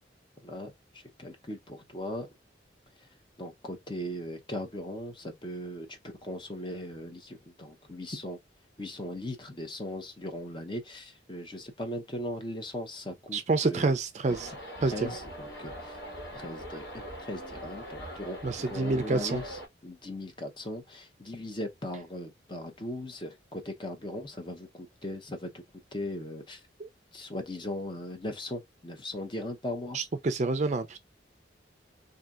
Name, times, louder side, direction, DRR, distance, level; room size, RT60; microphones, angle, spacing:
voice 1, 1.2-2.3 3.4-8.4 8.8-13.9 14.2-14.4 14.9-16.0 16.3-25.6 25.9-26.6 27.1-30.0, left 1 dB, 25° left, 0.7 m, -38 dB
voice 2, 13.3-14.5 14.8-15.1 18.4-19.4 26.8-26.9 29.9-31.0, right 3 dB, 35° right, 0.4 m, -28 dB
sound 1, 14.2-19.7, equal, 60° left, 1.8 m, -42 dB
2.7 x 2.7 x 3.5 m
head